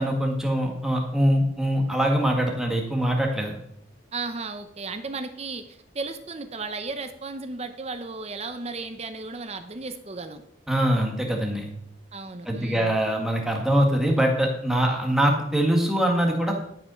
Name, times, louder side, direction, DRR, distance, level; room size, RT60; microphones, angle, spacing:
voice 1, 0.0-3.5 10.7-11.7 12.4-16.6, equal, ahead, 0 dB, 1.7 m, -23 dB
voice 2, 4.1-10.4 12.1-13.0, right 3 dB, 30° right, 9 dB, 0.7 m, -35 dB
12.0 x 5.4 x 6.3 m, 0.75 s
head